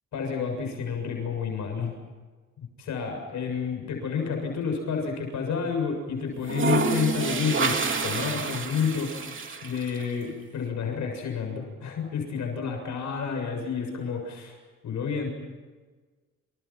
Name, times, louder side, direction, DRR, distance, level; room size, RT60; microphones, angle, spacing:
voice 1, 0.1-1.9 2.6-9.3 9.6-14.6 14.8-15.3, left 6 dB, 70° left, 3 dB, 7.3 m, -30 dB
sound 1, 4.2-5.0 6.3-10.1, right 4 dB, 40° right, 3.4 m, -28 dB
29.0 x 28.5 x 5.9 m, 1.4 s
cardioid pair, 90°, 30 cm